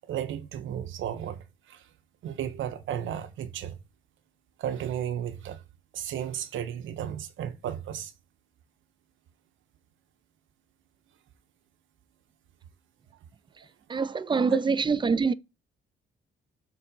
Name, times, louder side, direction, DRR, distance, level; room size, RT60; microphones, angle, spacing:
voice 1, 0.0-1.8 2.2-3.8 4.6-5.6 5.9-8.1, right 9 dB, 75° right, 1.0 m, -34 dB
voice 2, 13.9-15.3, right 5 dB, 25° right, 0.4 m, -24 dB
7.3 x 3.9 x 5.2 m
cardioid pair, 90°, 20 cm